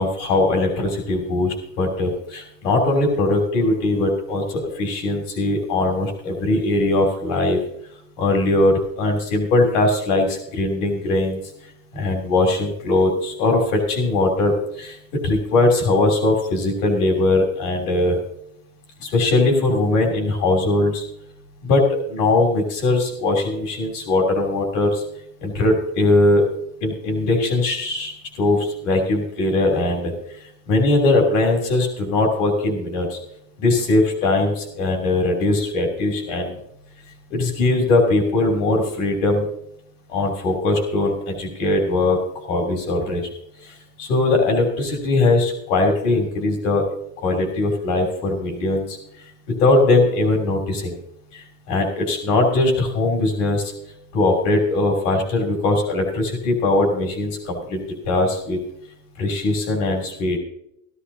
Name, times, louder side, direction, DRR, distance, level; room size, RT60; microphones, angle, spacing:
voice 1, 0.0-7.6 8.2-11.4 11.9-15.0 15.2-18.2 19.0-21.0 21.6-21.8 22.1-25.0 25.4-26.4 26.8-30.1 30.7-33.2 33.6-36.6 37.3-39.4 40.1-42.2 42.5-43.3 43.6-46.9 47.2-49.0 49.6-51.0 51.3-53.7 54.1-58.6 59.2-60.4, left 2 dB, 90° left, 2 dB, 3.1 m, -20 dB
14.5 x 13.5 x 2.8 m, 0.75 s
supercardioid pair, 90°, 37 cm